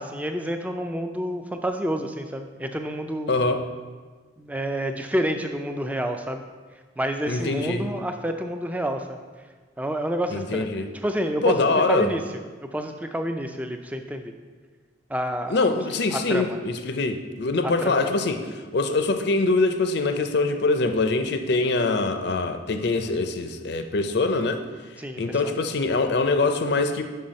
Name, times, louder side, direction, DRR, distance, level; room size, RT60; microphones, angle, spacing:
voice 1, 0.0-3.3 4.4-6.4 7.0-9.2 9.8-10.7 10.9-12.2 12.7-14.3 15.1-15.6 16.1-16.6 17.6-18.1 25.0-25.6, right 1 dB, 5° right, 6 dB, 0.3 m, -29 dB
voice 2, 3.3-3.6 7.3-7.9 10.3-10.9 11.4-12.1 15.5-18.4 18.7-24.6 25.2-27.0, left 3 dB, 55° left, 7 dB, 0.5 m, -23 dB
5.6 x 5.3 x 5.2 m, 1.4 s
head